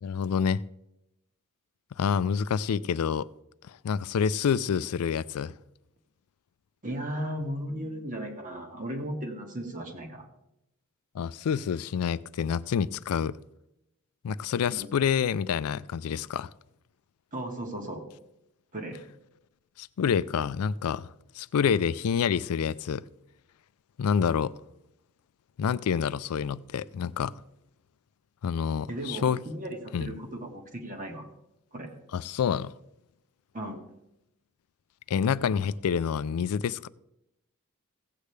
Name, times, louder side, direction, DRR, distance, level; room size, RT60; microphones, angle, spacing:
voice 1, 0.0-0.6 2.0-3.3 3.7-5.5 11.1-13.4 14.2-16.5 19.8-21.1 21.4-23.0 24.0-24.5 25.6-27.3 28.4-29.4 29.9-30.1 32.1-32.7 35.1-36.9, left 7 dB, 75° left, 0.4 m, -27 dB
voice 2, 6.8-10.2 14.7-14.9 17.3-18.0 18.7-19.0 28.9-31.3 31.7-31.9 33.5-33.8, right 1 dB, 35° right, 1.6 m, -36 dB
16.0 x 8.3 x 3.3 m
head